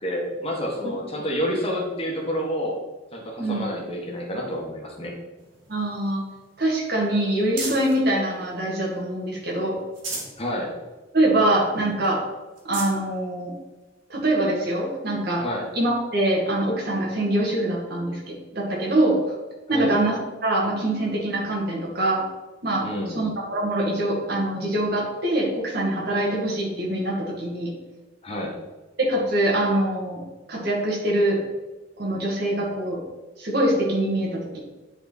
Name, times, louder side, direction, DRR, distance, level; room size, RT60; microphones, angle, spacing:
voice 1, 0.0-2.8 3.1-5.1 10.4-10.7 15.4-15.6 19.7-19.9 22.8-23.2 28.2-28.5, equal, 30° left, -1 dB, 1.6 m, -29 dB
sound 1, 5.4-8.0 8.6-9.3 9.7-10.4 10.9-11.0 11.3-11.4 12.0-12.1 12.5-13.0 13.8-13.9 15.7-15.8, right 3 dB, 85° right, 2.1 m, -37 dB
voice 2, 5.7-6.2 6.6-9.8 11.1-12.2 12.6-13.5 14.1-15.4 15.7-19.2 19.7-20.2 20.4-22.2 22.6-22.9 23.1-27.7 29.0-30.2 30.5-31.4 32.0-33.0 33.4-34.6, right 1 dB, 55° right, -2 dB, 2.3 m, -24 dB
9.8 x 4.5 x 4.1 m, 1.1 s
head